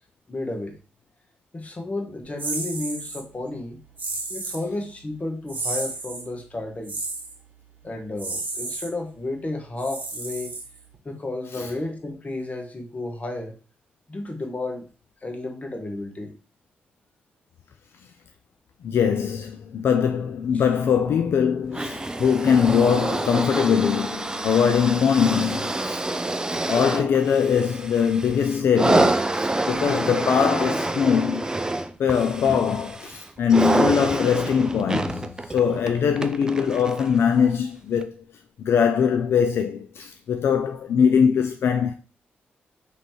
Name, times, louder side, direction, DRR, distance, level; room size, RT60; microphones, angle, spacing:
voice 1, 0.3-0.8 1.5-3.8 4.3-6.9 7.8-10.5 11.0-13.5 14.1-14.9 15.2-16.3, left 2 dB, 35° left, 1.2 m, -32 dB
sound 1, 2.4-3.2 4.0-4.6 5.5-6.3 6.8-7.3 8.2-8.9 9.8-10.9, right 3 dB, 40° right, 1.2 m, -32 dB
voice 2, 18.8-26.0 26.7-31.5 32.0-38.1 38.6-41.9, left 7 dB, 70° left, 0.3 m, -22 dB
sound 2, 21.7-37.2 38.0-38.1, right 2 dB, 15° right, 0.4 m, -27 dB
3.1 x 3.1 x 4.2 m
supercardioid pair, 55°, 4 cm